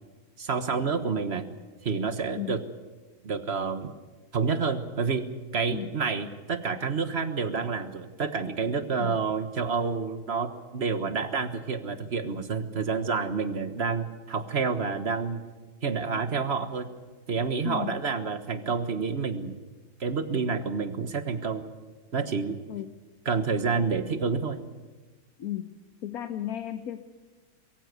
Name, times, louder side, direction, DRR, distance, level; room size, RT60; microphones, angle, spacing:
voice 1, 0.4-1.5 1.8-2.6 3.2-3.9 4.3-5.3 5.5-15.4 15.8-16.9 17.3-19.5 20.0-21.7 22.1-22.6 23.2-24.6, right 5 dB, 45° right, 10 dB, 1.5 m, -29 dB
voice 2, 5.7-6.0 9.0-9.2 17.6-18.0 22.7-22.9 25.4-25.7 26.0-27.0, left 11 dB, 75° left, 9 dB, 1.3 m, -35 dB
22.5 x 15.5 x 9.4 m, 1.3 s
omnidirectional pair, 1.6 m